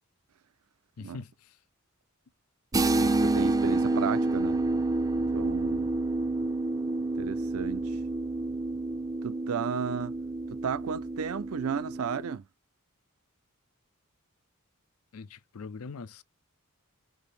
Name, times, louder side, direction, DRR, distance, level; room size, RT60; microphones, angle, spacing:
voice 1, 1.0-1.3 5.1-5.3 15.1-16.2, left 4 dB, 80° left, 0.5 m, -42 dB
sound 1, 2.7-12.4, right 2 dB, 15° right, 0.4 m, -29 dB
voice 2, 3.0-4.6 5.3-5.9 7.1-7.9 9.2-10.1 10.5-12.4, right 7 dB, 75° right, 0.5 m, -33 dB
6.1 x 2.6 x 3.3 m
head